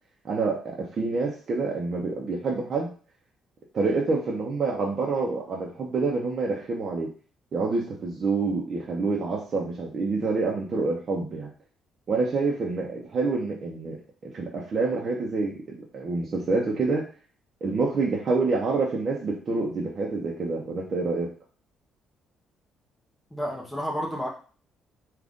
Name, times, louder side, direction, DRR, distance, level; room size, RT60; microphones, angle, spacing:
voice 1, 0.2-2.9 3.7-7.1 7.5-11.5 12.1-14.0 14.2-15.5 15.9-17.0 17.6-21.3, right 3 dB, 45° right, -3 dB, 0.8 m, -27 dB
voice 2, 23.3-24.3, equal, 5° left, -1 dB, 0.9 m, -30 dB
3.7 x 2.4 x 3.6 m, 0.40 s
cardioid pair, 115°, 0 cm